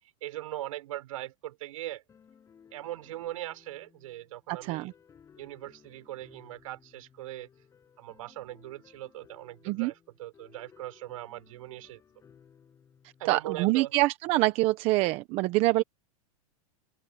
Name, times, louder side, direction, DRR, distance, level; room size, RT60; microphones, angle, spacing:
voice 1, 0.2-2.0 2.7-4.9 5.4-7.5 8.0-9.9 10.2-12.0 13.2-13.9, right 15 dB, 65° right, 5.8 m, -40 dB
sound 1, 2.1-14.1, left 7 dB, 15° left, 7.4 m, -60 dB
voice 2, 4.5-4.9 9.6-9.9 13.2-15.8, right 19 dB, 35° right, 0.9 m, -25 dB
supercardioid pair, 155°, 18 cm